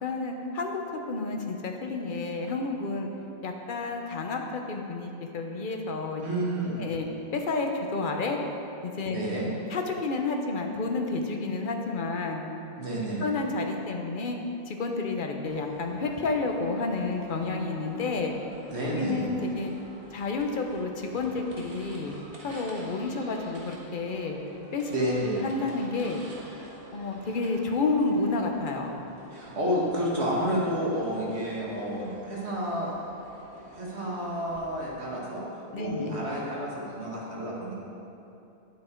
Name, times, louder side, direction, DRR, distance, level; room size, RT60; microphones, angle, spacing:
voice 1, 0.0-3.1 3.4-6.2 6.8-7.1 7.3-8.4 8.8-9.2 9.7-12.4 13.2-14.4 14.7-18.4 18.9-19.7 20.1-22.2 22.4-24.4 24.7-24.9 25.3-26.2 26.9-29.0 35.7-36.2, left 3 dB, 50° left, 2 dB, 1.0 m, -30 dB
voice 2, 6.2-6.8 9.1-9.5 12.8-13.3 18.7-19.2 24.9-25.4 29.3-32.9 33.7-35.4 35.8-37.8, equal, 90° right, -5 dB, 2.2 m, -30 dB
sound 1, 15.5-34.6, right 1 dB, 65° right, 1.8 m, -49 dB
10.0 x 8.5 x 4.5 m, 2.8 s
omnidirectional pair, 1.1 m